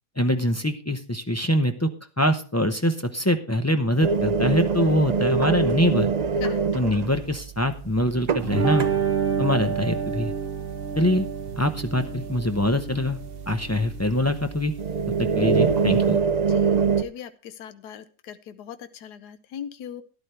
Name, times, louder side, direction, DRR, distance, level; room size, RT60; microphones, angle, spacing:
voice 1, 0.2-1.9 2.2-6.1 6.7-8.9 9.4-10.3 11.0-11.3 11.6-13.2 13.5-14.7 15.2-16.2, left 1 dB, 25° left, 6 dB, 0.3 m, -24 dB
sound 1, 4.0-17.0, right 5 dB, 65° right, 0.4 m, -26 dB
sound 2, 8.4-16.1, right 6 dB, 45° right, 1.0 m, -29 dB
voice 2, 16.4-20.0, left 9 dB, 85° left, 11 dB, 1.4 m, -40 dB
13.0 x 11.0 x 3.3 m, 0.37 s
omnidirectional pair, 1.7 m